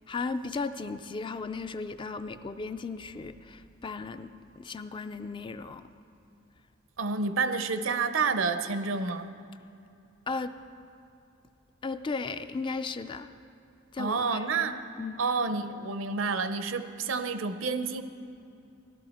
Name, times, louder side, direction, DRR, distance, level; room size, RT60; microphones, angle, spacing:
voice 1, 0.1-5.9 10.3-10.5 11.8-13.3 13.9-14.7 15.0-15.2, left 4 dB, 25° left, 11 dB, 0.3 m, -36 dB
voice 2, 7.0-9.3 14.0-14.8 15.2-18.0, right 4 dB, 80° right, 10 dB, 0.6 m, -29 dB
16.0 x 12.5 x 4.3 m, 2.7 s
head